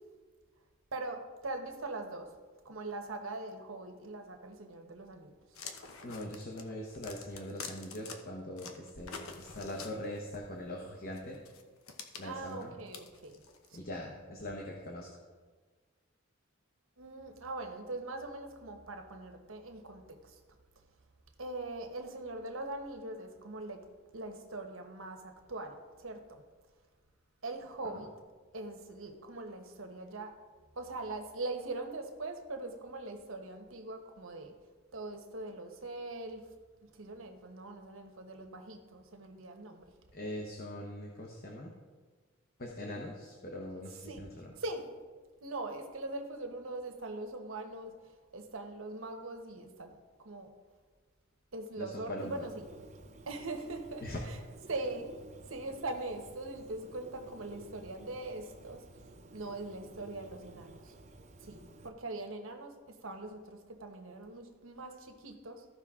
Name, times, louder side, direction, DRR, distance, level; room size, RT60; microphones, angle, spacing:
voice 1, 0.9-2.3 2.6-5.6 12.2-13.4 13.7-13.8 17.0-20.4 20.8-20.9 21.4-23.8 24.1-26.4 27.4-28.1 28.5-30.3 30.7-34.5 34.9-36.4 36.8-39.9 44.1-44.2 44.6-44.9 45.4-50.5 51.5-52.7 53.3-54.4 54.7-55.1 55.5-59.0 59.3-60.9 61.4-65.7, right 2 dB, 70° right, 4 dB, 1.1 m, -42 dB
sound 1, 5.5-8.2 8.6-10.4 11.1-13.8, left 5 dB, 90° left, 0.9 m, -47 dB
voice 2, 6.0-11.4 12.2-12.8 13.7-15.1 27.9-28.0 40.1-41.7 42.6-44.5 51.8-52.4 54.0-54.2, left 1 dB, 45° left, -1 dB, 1.0 m, -42 dB
Bird, 52.2-61.9, right 2 dB, 35° right, 0.7 m, -54 dB
14.5 x 5.6 x 3.7 m, 1.4 s
head